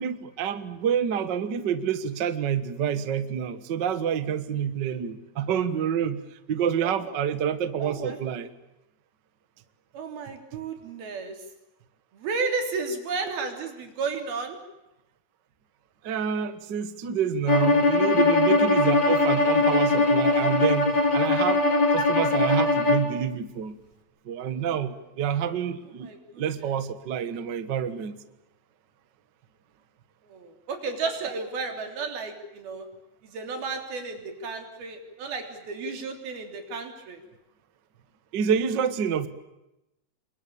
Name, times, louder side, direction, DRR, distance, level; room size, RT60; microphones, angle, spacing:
voice 1, 0.0-6.2 6.5-8.5 16.0-21.6 21.9-23.8 24.2-26.1 26.4-28.2 38.3-39.3, right 8 dB, 55° right, 11 dB, 1.2 m, -28 dB
voice 2, 6.8-7.2 7.8-8.2 9.9-11.4 12.1-14.6 26.0-26.8 30.3-32.9 33.2-37.2, right 4 dB, 85° right, 4 dB, 5.4 m, -33 dB
Bowed string instrument, 17.5-23.1, left 2 dB, 30° left, 4.0 m, -21 dB
28.0 x 23.0 x 8.8 m, 0.91 s
omnidirectional pair, 4.2 m